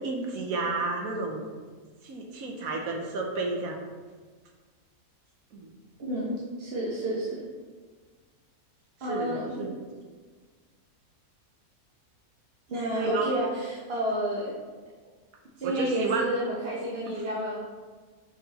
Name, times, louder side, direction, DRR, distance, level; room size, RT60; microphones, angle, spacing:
voice 1, 0.0-1.5 2.0-3.8 5.5-5.7 9.1-9.7 12.9-13.3 15.6-16.4 17.1-17.2, right 3 dB, 70° right, 1 dB, 1.3 m, -31 dB
voice 2, 6.0-7.4 9.0-9.6 12.7-14.5 15.6-17.6, right 1 dB, 45° right, -7 dB, 1.2 m, -31 dB
6.2 x 4.8 x 4.1 m, 1.5 s
omnidirectional pair, 1.5 m